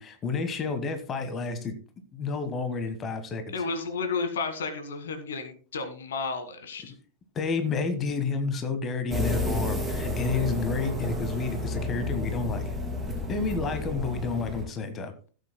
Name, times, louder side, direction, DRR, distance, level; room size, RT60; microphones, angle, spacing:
voice 1, 0.0-1.8 2.1-3.5 7.3-12.8 13.3-15.1, left 4 dB, 25° left, 8 dB, 1.4 m, -30 dB
voice 2, 3.5-6.9, left 4 dB, 65° left, 8 dB, 1.7 m, -32 dB
sound 1, 9.1-14.7, left 2 dB, 5° right, 3.0 m, -31 dB
16.5 x 8.3 x 2.2 m, 0.38 s
figure-of-eight pair, 90°, 0 cm